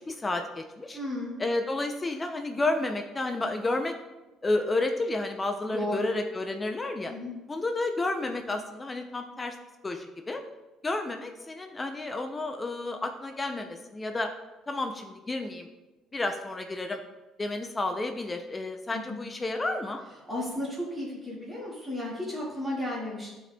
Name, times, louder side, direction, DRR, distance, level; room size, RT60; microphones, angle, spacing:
voice 1, 0.0-1.0 1.4-3.9 4.4-7.1 7.5-9.5 9.8-10.4 10.8-14.3 14.7-15.7 16.1-17.0 17.4-20.0, left 2 dB, 15° left, 5 dB, 0.4 m, -31 dB
voice 2, 0.9-1.3 5.7-6.1 7.1-7.3 18.9-19.2 20.3-23.3, left 1 dB, 5° right, -7 dB, 1.7 m, -34 dB
11.0 x 4.1 x 2.2 m, 1.1 s
cardioid pair, 145°, 0 cm